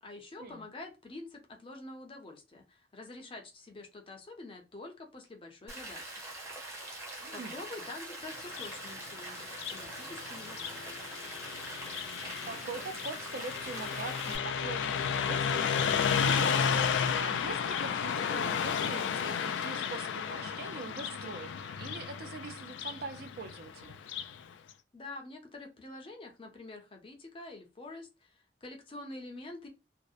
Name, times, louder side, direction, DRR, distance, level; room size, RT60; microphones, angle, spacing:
voice 1, 0.0-6.2 6.9-11.1 24.9-29.7, left 2 dB, 30° left, 0.5 m, -47 dB
Rain, 5.7-14.4, right 2 dB, 15° right, 0.7 m, -44 dB
voice 2, 7.2-7.6 12.5-24.0, right 4 dB, 55° right, 0.4 m, -43 dB
Car passing by, 8.4-24.4, left 7 dB, 85° left, 0.3 m, -33 dB
2.7 x 2.1 x 2.3 m
head